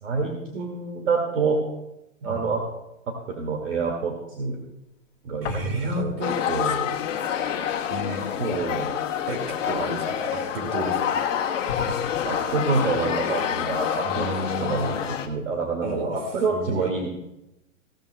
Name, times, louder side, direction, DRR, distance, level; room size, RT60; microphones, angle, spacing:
voice 1, 0.0-1.6 2.2-2.6 3.1-4.6 5.2-6.1 6.5-7.0 8.4-9.0 12.2-17.1, right 4 dB, 65° right, 1 dB, 2.3 m, -27 dB
sound 1, 5.4-6.2 6.5-10.5 11.0-11.1 11.7-12.6, left 5 dB, 20° left, 1.6 m, -38 dB
voice 2, 5.4-6.3 6.6-6.8 7.9-8.3 9.3-11.4 14.0-14.9 15.8-16.2 16.5-16.9, right 1 dB, 45° right, 4 dB, 2.3 m, -32 dB
sound 2, 6.2-15.3, left 9 dB, 65° left, 1.5 m, -27 dB
17.0 x 14.0 x 2.3 m, 0.90 s
hypercardioid pair, 180°, 40 cm